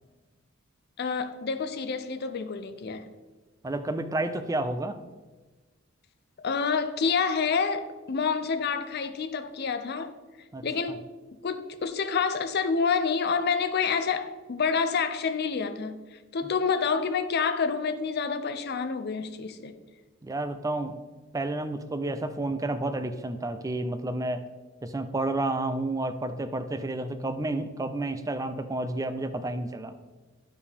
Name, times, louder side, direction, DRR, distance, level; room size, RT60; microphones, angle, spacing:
voice 1, 1.0-3.1 6.4-10.1 10.6-11.0 11.4-19.7, left 5 dB, 50° left, 0.5 m, -28 dB
voice 2, 3.6-5.0 10.5-10.6 20.2-21.0 21.3-24.4 24.8-29.9, right 2 dB, 15° right, 0.4 m, -30 dB
10.5 x 4.8 x 3.4 m
head